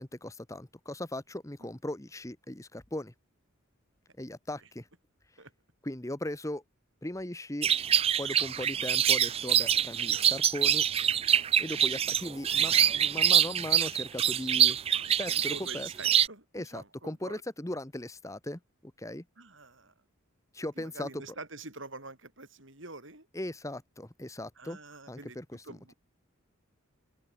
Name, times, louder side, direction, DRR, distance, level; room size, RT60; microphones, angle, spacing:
voice 1, 0.0-3.1 4.2-4.9 5.8-6.6 7.0-7.7 8.2-10.8 11.6-14.8 15.2-15.9 16.5-18.6 19.0-19.2 20.5-21.2 23.3-24.8 25.1-25.8, left 1 dB, 15° left, 1.1 m, -38 dB
sound 1, 7.6-16.3, right 9 dB, 30° right, 0.4 m, -25 dB
voice 2, 15.3-17.4 19.4-19.9 20.8-23.3 24.6-25.4 25.6-26.0, right 3 dB, 65° right, 7.2 m, -46 dB
open air
head